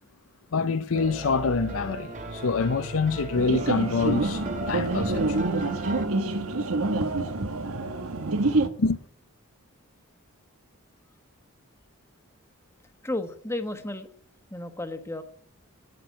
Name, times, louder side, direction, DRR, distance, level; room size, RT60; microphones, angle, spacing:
voice 1, 0.5-5.5 8.8-9.0, left 4 dB, 70° left, 0.6 m, -26 dB
sound 1, 0.9-6.1, right 1 dB, 35° right, 2.5 m, -37 dB
sound 2, 3.4-8.7, right 2 dB, 75° right, 1.3 m, -27 dB
voice 2, 13.0-14.1 14.5-15.2, left 1 dB, 10° left, 1.2 m, -32 dB
17.5 x 6.1 x 9.4 m
head